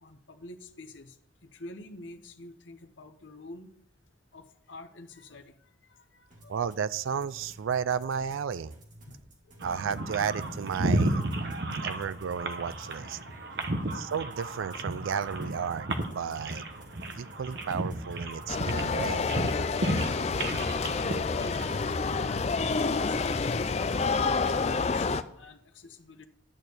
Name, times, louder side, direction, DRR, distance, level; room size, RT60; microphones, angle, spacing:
voice 1, 0.0-1.2 1.4-3.7 4.3-6.5 9.1-9.2 9.5-9.7 11.6-12.0 13.3-13.9 19.5-19.7 20.4-20.5 21.0-24.2 24.7-26.3, left 2 dB, 70° left, 6 dB, 0.9 m, -47 dB
sound 1, 6.3-24.1, right 1 dB, 40° right, 2.1 m, -53 dB
voice 2, 6.5-8.7 9.6-11.2 11.8-13.2 13.9-16.6 17.2-19.3, right 7 dB, 85° right, 17 dB, 0.4 m, -33 dB
sound 2, 9.6-22.0, right 1 dB, 55° right, 1.0 m, -33 dB
sound 3, 18.5-25.2, left 4 dB, 35° left, 0.4 m, -28 dB
11.0 x 4.4 x 8.0 m, 0.71 s
head